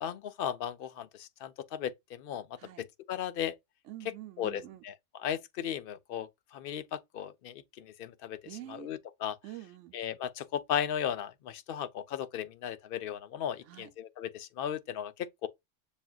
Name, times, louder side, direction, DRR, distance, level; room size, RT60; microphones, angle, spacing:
voice 1, 0.0-2.5 2.8-3.5 4.4-4.9 5.2-8.4 8.7-9.4 9.9-15.1 15.4-15.5, left 9 dB, 60° left, 0.6 m, -36 dB
voice 2, 3.8-4.8 8.5-8.9 9.4-10.0 13.6-13.9, right 13 dB, 75° right, 1.0 m, -46 dB
7.1 x 2.4 x 2.2 m
omnidirectional pair, 1.3 m